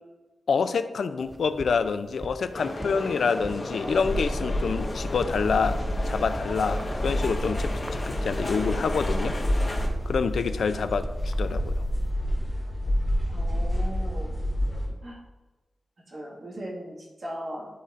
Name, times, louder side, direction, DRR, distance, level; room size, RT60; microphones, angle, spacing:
voice 1, 0.5-9.3 10.1-11.8, left 5 dB, 70° left, 10 dB, 0.4 m, -27 dB
sound 1, 1.2-12.1, right 1 dB, 15° right, 0.3 m, -43 dB
sound 2, 2.5-9.9, left 2 dB, 35° left, 1.3 m, -34 dB
sound 3, 3.9-14.9, equal, 15° left, 2.0 m, -29 dB
voice 2, 13.3-14.4 15.0-15.2 16.1-17.7, equal, 45° right, -5 dB, 1.7 m, -38 dB
11.0 x 4.1 x 2.5 m, 1.2 s
wide cardioid pair, 145°, 0 cm